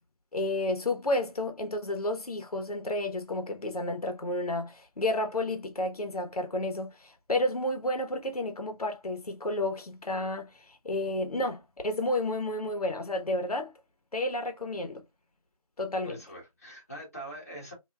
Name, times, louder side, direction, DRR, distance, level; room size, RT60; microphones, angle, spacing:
voice 1, 0.3-13.7 14.1-15.0 15.8-16.2, left 1 dB, 90° left, 1.0 m, -31 dB
voice 2, 15.9-17.7, equal, 25° left, 1.1 m, -43 dB
3.4 x 2.6 x 2.2 m
figure-of-eight pair, 180°, 19 cm